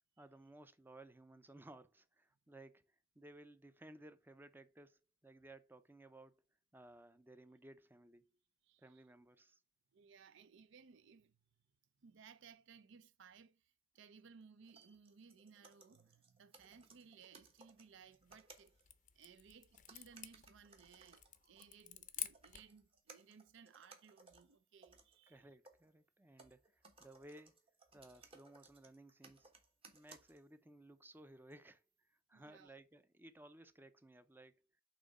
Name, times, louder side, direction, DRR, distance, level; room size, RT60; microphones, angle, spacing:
voice 1, 0.2-6.4 6.7-8.4 8.8-9.6 25.3-27.7 27.9-29.5 29.9-34.7, right 1 dB, 10° right, 0.5 m, -59 dB
voice 2, 8.6-9.0 9.9-11.4 12.0-18.8 19.1-25.4 32.3-32.7, right 6 dB, 65° right, 0.5 m, -62 dB
sound 1, 14.6-18.8 19.7-25.9 26.4-30.6 31.5-31.6, right 3 dB, 30° right, 1.2 m, -64 dB
sound 2, 18.1-22.8, left 12 dB, 40° left, 0.6 m, -50 dB
7.5 x 3.1 x 5.3 m
head